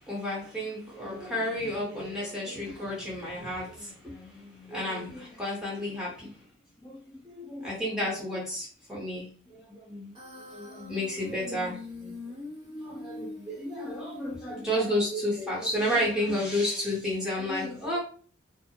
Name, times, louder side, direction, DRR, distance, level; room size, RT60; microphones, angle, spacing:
voice 1, 0.0-6.5 6.8-10.1 10.4-12.2 12.8-18.0, left 1 dB, 5° right, -6 dB, 1.1 m, -32 dB
Human voice, 10.1-15.1, left 2 dB, 25° right, 1.0 m, -43 dB
2.8 x 2.0 x 2.9 m, 0.43 s
head